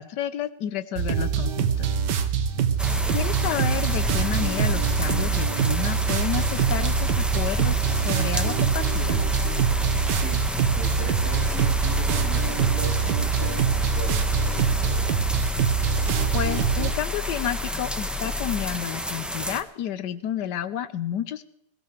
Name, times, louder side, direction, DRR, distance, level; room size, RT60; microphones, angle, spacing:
voice 1, 0.0-1.9 3.1-9.2 16.3-21.4, left 10 dB, 75° left, 13 dB, 1.4 m, -30 dB
sound 1, 1.0-16.9, right 7 dB, 80° right, 1.6 m, -24 dB
sound 2, 2.8-18.7, left 5 dB, 15° left, 1.6 m, -34 dB
sound 3, 2.8-19.6, equal, ahead, 0.5 m, -31 dB
voice 2, 2.8-3.2 10.1-10.4 10.7-15.3, right 1 dB, 55° right, 1 dB, 3.0 m, -39 dB
21.0 x 16.0 x 3.3 m, 0.78 s
omnidirectional pair, 1.9 m